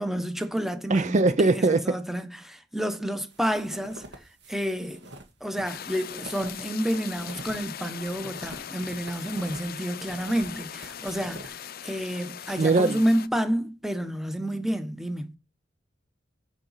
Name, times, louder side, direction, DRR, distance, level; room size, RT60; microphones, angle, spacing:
voice 1, 0.0-4.0 4.5-5.1 5.4-15.4, equal, ahead, 1.0 m, -29 dB
voice 2, 0.9-2.0 12.6-13.0, right 3 dB, 40° right, 0.5 m, -21 dB
sound 1, 3.3-9.7 10.0-11.5, right 1 dB, 70° right, 1.9 m, -45 dB
sound 2, 5.7-13.3, left 9 dB, 55° left, 0.6 m, -40 dB
7.5 x 5.1 x 5.7 m
head